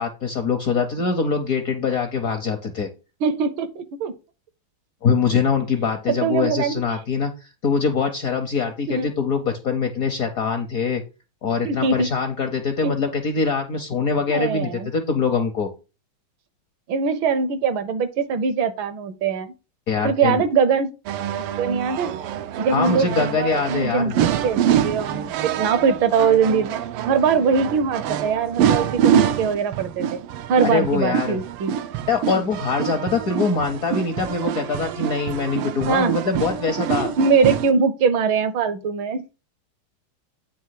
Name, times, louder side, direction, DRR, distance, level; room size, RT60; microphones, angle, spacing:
voice 1, 0.0-2.9 5.0-11.0 11.4-15.7 19.9-20.4 22.7-24.1 30.6-31.4 32.1-37.1, left 5 dB, 60° left, 0.9 m, -23 dB
voice 2, 3.2-4.1 6.1-6.8 8.9-9.1 11.6-12.1 12.8-12.9 14.3-14.9 16.9-19.5 20.0-20.9 21.6-22.1 22.6-26.8 27.1-30.2 30.5-31.7 35.8-36.1 37.0-39.3, right 5 dB, 70° right, 1.4 m, -22 dB
sound 1, 21.1-37.7, right 9 dB, 90° right, 1.5 m, -25 dB
8.7 x 2.9 x 5.8 m
omnidirectional pair, 2.4 m